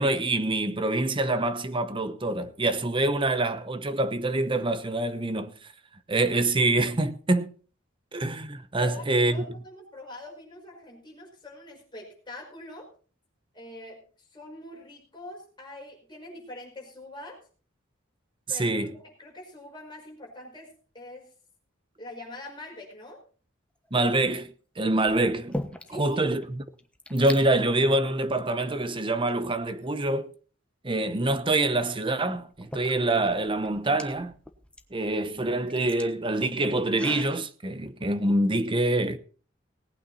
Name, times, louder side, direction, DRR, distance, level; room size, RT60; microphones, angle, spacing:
voice 1, 0.0-5.5 6.1-7.5 8.1-9.4 18.5-18.9 23.9-24.5 24.8-25.6 25.9-26.6 27.1-30.3 30.8-34.3 34.9-39.2, right 2 dB, 25° right, 0.9 m, -25 dB
voice 2, 8.8-12.9 13.5-14.0 14.3-17.4 18.5-20.7 20.9-21.3 22.0-23.2 25.9-26.2, left 2 dB, 25° left, 5.3 m, -43 dB
sound 1, 23.8-24.3 25.1-26.1 26.4-26.5 26.7-27.4 28.2-28.4 29.0-29.9 31.6-31.7 32.4-37.4, left 1 dB, 5° left, 1.2 m, -41 dB
19.0 x 8.8 x 4.2 m
head